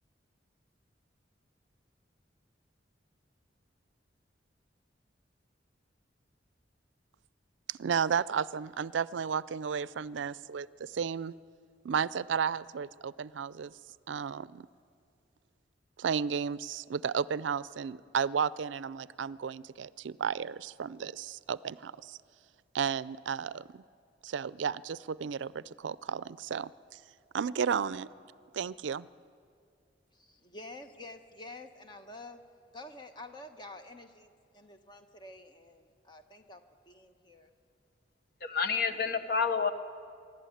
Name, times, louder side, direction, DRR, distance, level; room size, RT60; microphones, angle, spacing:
voice 1, 7.7-11.3 11.8-13.7 14.1-14.7 16.0-22.2 22.7-23.8 24.2-27.0 27.3-28.1 28.5-29.1, right 7 dB, 90° right, 19 dB, 0.4 m, -33 dB
voice 2, 30.1-32.4 32.7-36.6 36.9-37.5, left 2 dB, 25° left, 6 dB, 1.1 m, -49 dB
voice 3, 38.4-39.7, left 5 dB, 55° left, 9 dB, 1.0 m, -29 dB
24.5 x 12.0 x 9.2 m, 2.3 s
head